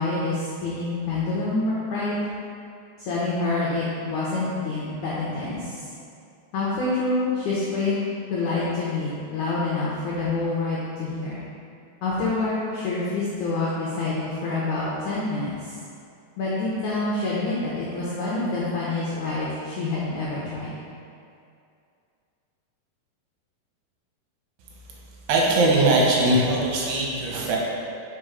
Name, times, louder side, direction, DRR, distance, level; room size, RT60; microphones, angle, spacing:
voice 1, 0.0-2.2 3.0-5.8 6.5-8.0 8.3-11.4 12.0-15.7 16.4-20.7, left 3 dB, 80° left, -7 dB, 1.7 m, -27 dB
voice 2, 25.3-27.6, right 2 dB, 80° right, -3 dB, 3.1 m, -20 dB
6.0 x 5.1 x 4.9 m, 2.4 s
omnidirectional pair, 4.7 m